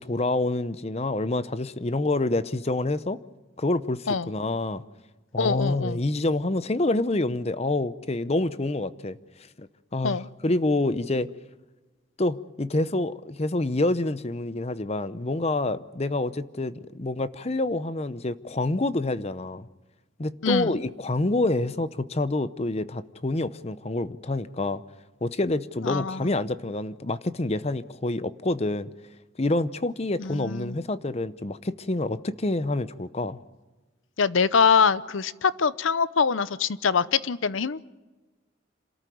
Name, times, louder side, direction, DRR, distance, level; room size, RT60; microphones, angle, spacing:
voice 1, 0.0-3.2 3.6-4.8 5.3-9.2 9.6-9.7 9.9-11.3 12.2-19.7 20.2-24.8 25.2-28.9 29.4-33.4, left 2 dB, 30° left, 0.7 m, -27 dB
voice 2, 5.4-6.0 10.0-10.3 20.4-20.7 25.8-26.3 30.2-30.8 34.2-37.8, left 5 dB, 80° left, 0.7 m, -24 dB
27.5 x 13.5 x 9.3 m
head